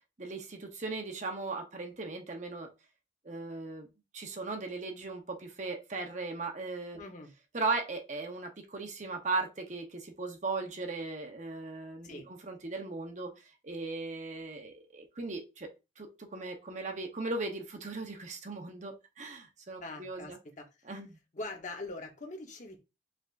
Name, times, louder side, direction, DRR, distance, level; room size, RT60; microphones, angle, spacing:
voice 1, 0.2-2.7 3.2-3.9 4.1-7.0 7.5-15.7 16.0-20.4 20.9-21.2, right 3 dB, 40° right, 0.9 m, -38 dB
voice 2, 7.0-7.3 12.0-12.3 19.8-20.9 21.3-22.8, left 2 dB, 45° left, 1.0 m, -43 dB
5.0 x 3.4 x 2.5 m
head